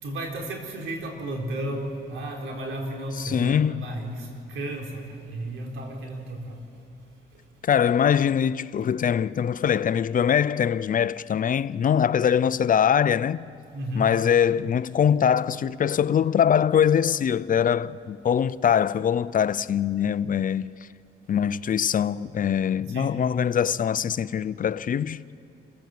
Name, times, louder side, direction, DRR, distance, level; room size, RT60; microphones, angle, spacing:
voice 1, 0.0-6.8 7.3-7.5 13.7-14.1 22.9-23.2, right 1 dB, 80° right, 3.7 m, -33 dB
voice 2, 3.2-3.8 7.6-13.4 14.0-20.7 21.3-25.2, left 8 dB, 45° left, 0.6 m, -23 dB
27.5 x 16.0 x 7.7 m
cardioid pair, 90°, 20 cm